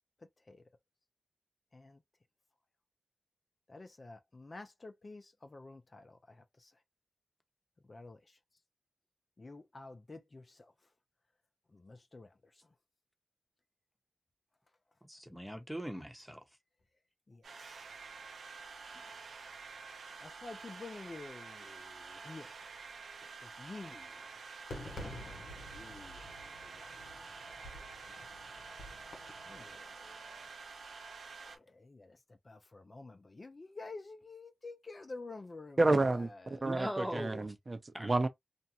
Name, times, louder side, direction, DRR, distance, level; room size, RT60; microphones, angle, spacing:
voice 1, 3.7-6.7 7.9-8.4 9.4-10.7 11.7-12.7 17.3-17.9 18.9-19.0 20.2-22.5 23.2-24.3 25.7-27.4 29.4-30.5 31.4-36.7, left 3 dB, 45° left, 0.5 m, -50 dB
voice 2, 15.1-16.4 36.6-37.5 37.9-38.1, equal, 5° right, 0.9 m, -40 dB
sound 1, 17.4-31.6, right 4 dB, 85° right, 0.6 m, -49 dB
Fireworks, 24.7-29.8, left 1 dB, 80° left, 0.9 m, -49 dB
voice 3, 35.8-38.3, right 2 dB, 45° right, 0.7 m, -30 dB
2.5 x 2.2 x 2.8 m
cardioid pair, 40°, 0 cm